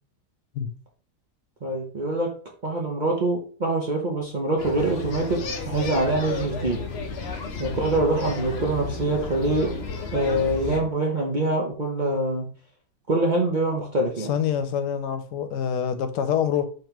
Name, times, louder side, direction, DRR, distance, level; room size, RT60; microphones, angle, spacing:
voice 1, 1.6-2.3 2.6-5.4 5.7-6.8 7.6-9.7 10.1-12.5 13.1-14.3, right 2 dB, 45° right, 0.6 m, -24 dB
sound 1, 4.6-10.8, left 4 dB, 55° left, 0.7 m, -32 dB
voice 2, 14.2-16.7, left 8 dB, 85° left, 1.2 m, -26 dB
5.3 x 3.3 x 2.9 m
omnidirectional pair, 1.7 m